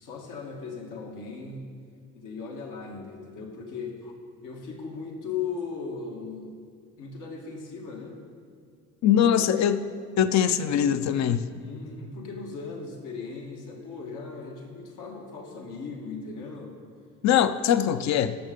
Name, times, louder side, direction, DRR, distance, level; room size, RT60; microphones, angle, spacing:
voice 1, 0.0-1.7 2.1-4.1 4.4-6.5 7.0-8.1 9.1-9.6 10.5-11.1 11.6-16.7, left 5 dB, 85° left, 0 dB, 1.7 m, -38 dB
voice 2, 9.0-9.8 10.2-11.4 17.2-18.4, left 9 dB, 65° left, 12 dB, 0.5 m, -22 dB
14.0 x 6.5 x 5.2 m, 2.1 s
cardioid pair, 90°, 30 cm